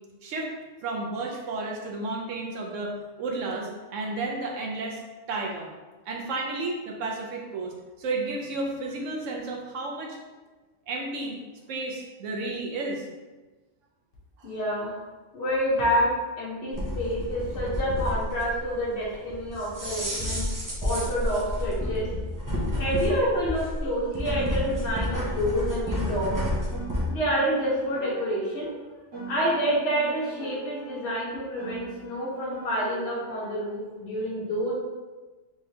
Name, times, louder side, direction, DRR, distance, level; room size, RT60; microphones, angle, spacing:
voice 1, 0.2-0.5 0.8-5.0 5.3-5.7 6.1-7.7 8.0-10.2 10.9-11.4 11.7-13.1 14.4-14.5, right 2 dB, 85° right, 0 dB, 1.1 m, -32 dB
voice 2, 14.4-15.0 15.3-16.1 16.4-20.4 20.8-22.1 22.8-26.4 27.1-28.7 29.3-34.7, equal, 60° left, -6 dB, 1.1 m, -28 dB
sound 1, 16.7-27.1, left 1 dB, 25° right, 0.5 m, -30 dB
Piano, 24.3-28.7 29.1-33.7, right 2 dB, 55° right, 1.4 m, -42 dB
3.5 x 3.2 x 2.8 m, 1.2 s
omnidirectional pair, 1.3 m